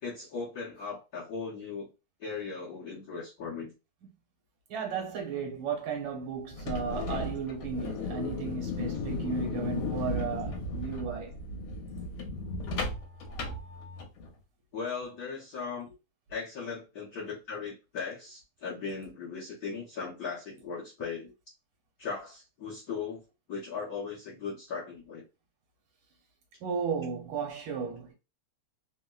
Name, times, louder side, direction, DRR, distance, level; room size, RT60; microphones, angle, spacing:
voice 1, 0.0-1.9 2.2-3.7 14.7-15.9 16.3-21.3 22.0-23.2 23.5-25.2, left 5 dB, 60° left, 1.0 m, -38 dB
voice 2, 4.7-11.4 26.6-28.1, right 5 dB, 70° right, 1.6 m, -34 dB
sound 1, 6.5-14.3, left 3 dB, 75° left, 1.5 m, -35 dB
3.6 x 2.0 x 2.2 m
omnidirectional pair, 2.4 m